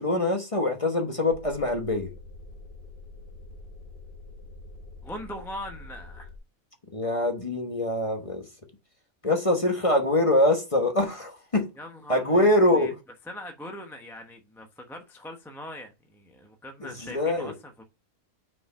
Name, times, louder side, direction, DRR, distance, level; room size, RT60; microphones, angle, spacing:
voice 1, 0.0-2.1 6.9-8.5 9.2-11.7 12.1-12.9 16.8-17.5, left 1 dB, 25° left, 1.1 m, -24 dB
sound 1, 1.3-6.4, left 2 dB, 40° left, 1.3 m, -45 dB
voice 2, 5.0-6.3 11.8-12.5 12.7-12.9 13.3-17.8, left 1 dB, ahead, 0.7 m, -41 dB
6.0 x 5.1 x 5.6 m
omnidirectional pair, 1.5 m